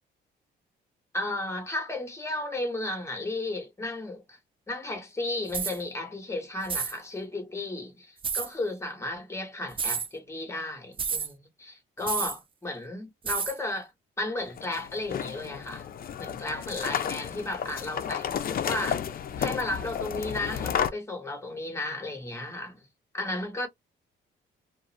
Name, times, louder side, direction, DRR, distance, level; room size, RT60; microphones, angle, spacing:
voice 1, 1.1-4.4 4.7-13.9 14.2-15.9 16.2-19.0 19.4-22.9 23.1-23.7, left 2 dB, 15° left, 1.1 m, -34 dB
sound 1, 5.5-5.8 6.6-7.0 8.2-8.5 9.7-10.1 11.0-11.3 12.1-12.4 13.3-13.6, right 6 dB, 25° right, 0.4 m, -30 dB
sound 2, 14.4-20.9, left 8 dB, 50° left, 0.5 m, -32 dB
2.5 x 2.3 x 2.9 m
cardioid pair, 90°, 20 cm